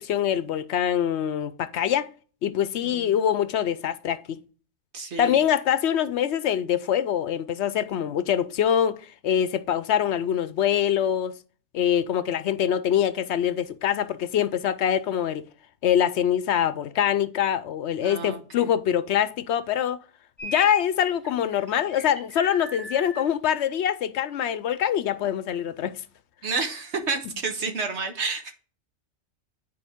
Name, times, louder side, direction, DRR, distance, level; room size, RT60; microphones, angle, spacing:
voice 1, 0.0-2.1 2.4-4.2 5.2-9.0 9.2-11.3 11.7-15.5 15.8-20.0 20.4-26.0, left 9 dB, 70° left, 0.8 m, -24 dB
voice 2, 2.8-3.2 4.9-5.4 18.0-18.7 26.4-28.6, right 4 dB, 70° right, 1.5 m, -30 dB
sound 1, 20.4-20.9 21.2-23.2, left 1 dB, 40° right, 3.5 m, -36 dB
9.9 x 4.6 x 3.6 m
omnidirectional pair, 1.2 m